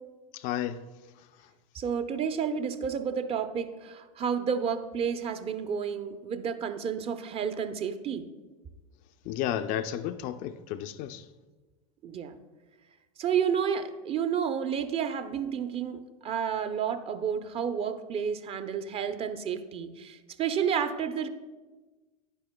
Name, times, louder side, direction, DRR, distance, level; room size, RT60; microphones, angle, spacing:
voice 1, 0.3-0.8 9.3-11.2, left 11 dB, 45° left, 10 dB, 0.5 m, -32 dB
voice 2, 1.7-8.3 12.0-12.3 13.2-21.3, right 7 dB, 30° right, 9 dB, 0.7 m, -31 dB
10.5 x 9.8 x 2.2 m, 1.3 s
hypercardioid pair, 85°, 18 cm